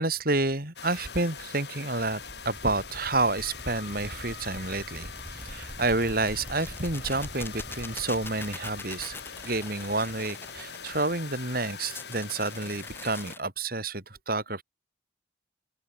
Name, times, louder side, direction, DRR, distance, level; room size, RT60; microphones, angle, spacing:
voice 1, 0.0-9.2 9.4-14.6, right 2 dB, 55° right, 5.9 m, -29 dB
sound 1, 0.8-13.4, left 6 dB, 65° left, 6.4 m, -43 dB
sound 2, 2.0-11.2, equal, 10° right, 7.7 m, -45 dB
sound 3, 6.6-11.1 11.8-13.4, left 3 dB, 10° left, 7.1 m, -42 dB
open air
head